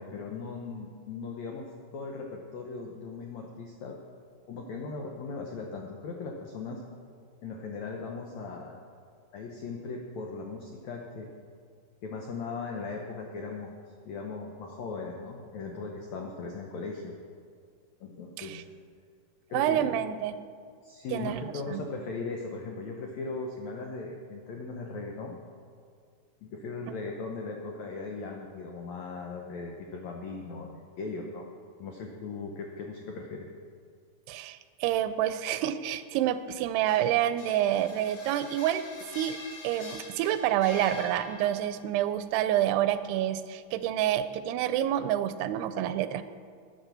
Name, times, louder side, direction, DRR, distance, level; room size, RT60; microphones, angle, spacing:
voice 1, 0.0-4.0 4.5-6.8 7.4-8.7 9.3-11.3 12.0-13.7 14.0-17.2 18.0-18.7 19.5-19.9 20.8-25.4 26.4-31.5 31.8-33.5, left 4 dB, 90° left, 1 dB, 1.5 m, -38 dB
voice 2, 19.5-20.3 21.1-21.8 34.3-38.8 39.1-39.4 39.6-46.2, right 11 dB, 90° right, 12 dB, 2.7 m, -28 dB
sound 1, 36.6-41.8, left 2 dB, 60° left, 1.4 m, -45 dB
10.5 x 9.9 x 6.8 m, 2.2 s
omnidirectional pair, 4.6 m